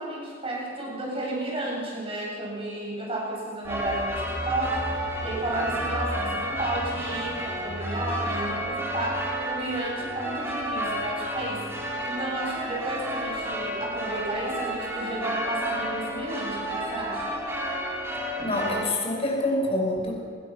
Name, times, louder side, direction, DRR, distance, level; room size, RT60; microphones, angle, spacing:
voice 1, 0.0-17.3, right 1 dB, 30° right, -2 dB, 7.2 m, -32 dB
sound 1, 3.6-18.8, equal, 15° right, 4.9 m, -31 dB
voice 2, 18.4-20.1, left 1 dB, 30° left, 0 dB, 5.9 m, -26 dB
28.5 x 21.0 x 6.2 m, 2.1 s
head